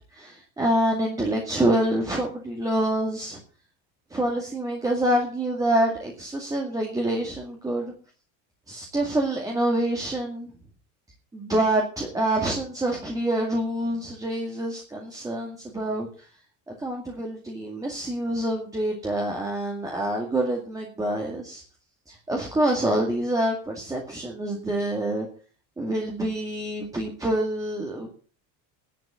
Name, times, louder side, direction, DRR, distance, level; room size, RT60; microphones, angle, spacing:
voice 1, 0.1-3.4 4.1-7.9 8.7-10.5 11.3-16.1 16.7-21.6 22.1-25.3 25.8-28.1, right 1 dB, 10° right, 0 dB, 2.1 m, -26 dB
11.0 x 10.5 x 7.5 m, 0.40 s
cardioid pair, 175°, 37 cm